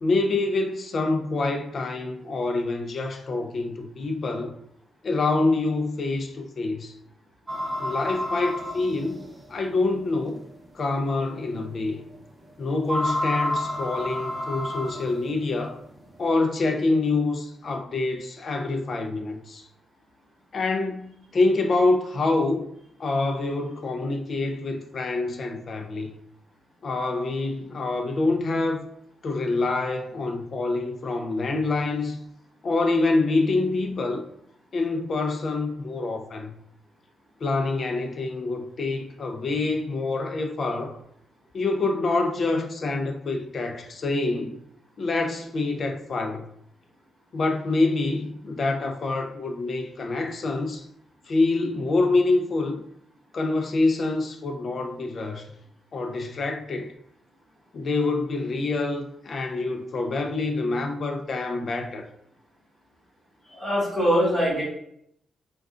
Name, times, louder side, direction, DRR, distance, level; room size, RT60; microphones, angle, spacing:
voice 1, 0.0-4.5 5.0-6.9 7.8-10.4 10.7-12.0 12.6-15.8 16.2-19.6 20.5-21.1 21.3-22.7 23.0-26.1 26.8-28.8 29.2-32.2 32.6-34.2 34.7-36.5 37.4-41.0 41.5-44.6 45.0-46.4 47.3-50.8 51.3-52.8 53.3-55.5 55.9-56.9 57.7-62.0, left 3 dB, 45° left, 0.4 m, -26 dB
sound 1, 7.5-9.5 10.2-10.3 10.9-11.0 12.9-15.3, left 1 dB, 15° right, 0.6 m, -29 dB
voice 2, 63.5-64.6, equal, ahead, 1.5 m, -22 dB
3.6 x 2.3 x 2.4 m
cardioid pair, 135°, 0 cm